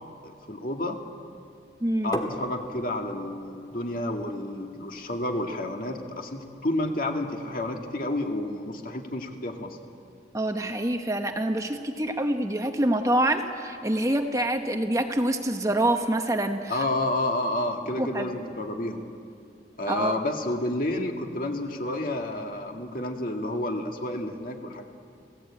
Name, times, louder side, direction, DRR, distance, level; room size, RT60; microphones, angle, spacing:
voice 1, 0.2-1.0 2.0-9.8 16.7-19.1 19.8-24.8, left 1 dB, 50° left, 3 dB, 2.1 m, -30 dB
voice 2, 1.8-2.2 10.3-16.8 18.0-18.5 19.9-20.1, right 1 dB, 20° right, 5 dB, 1.0 m, -26 dB
sound 1, 2.1-7.8, left 1 dB, 20° left, 1.6 m, -40 dB
27.0 x 17.0 x 8.8 m, 2.4 s
head